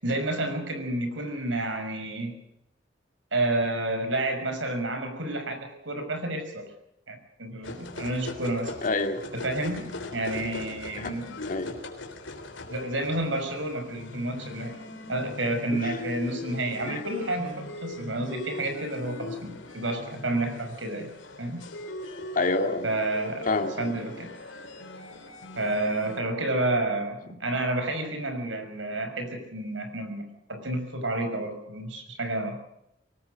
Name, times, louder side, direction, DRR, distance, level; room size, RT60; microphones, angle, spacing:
voice 1, 0.0-2.3 3.3-6.6 7.1-8.7 9.3-11.3 12.7-14.7 15.1-21.1 21.4-21.6 22.8-23.5 23.8-24.3 25.6-32.6, right 2 dB, 80° right, 7 dB, 6.0 m, -30 dB
sound 1, 7.6-26.2, left 2 dB, 90° left, 3.7 m, -40 dB
voice 2, 8.8-9.2 11.0-11.1 11.5-11.7 15.7-15.9 16.9-17.0 22.4-22.9 23.5-23.9, left 3 dB, 45° left, 5 dB, 2.5 m, -27 dB
24.0 x 19.0 x 6.5 m, 0.81 s
head